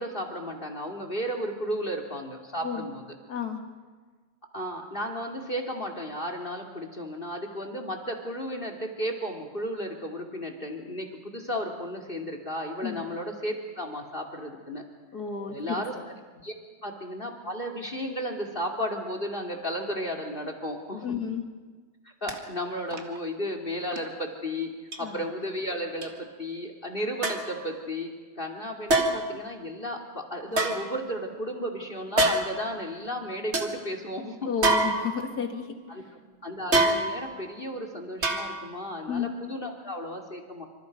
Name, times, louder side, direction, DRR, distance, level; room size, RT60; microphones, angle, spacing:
voice 1, 0.0-3.0 4.5-14.8 15.5-15.9 16.4-16.5 16.8-21.0 22.0-24.7 25.0-34.5 35.9-36.0 36.4-40.7, equal, 20° left, 4 dB, 2.2 m, -34 dB
voice 2, 3.3-3.6 12.8-13.0 15.1-15.8 21.0-21.4 25.0-25.3 34.5-36.1 39.1-39.4, left 7 dB, 35° left, 5 dB, 2.1 m, -32 dB
sound 1, 22.3-22.4 22.9-23.2 23.9-24.0 24.9-25.0 26.0-26.1 27.2-27.6 28.9-29.4 30.5-31.4 32.2-32.7 33.1-33.2 33.5-33.7 34.6-35.5 36.7-37.4 38.2-38.8 39.1-39.2, right 2 dB, 25° right, 1.6 m, -26 dB
26.5 x 26.0 x 5.3 m, 1.4 s
omnidirectional pair, 3.6 m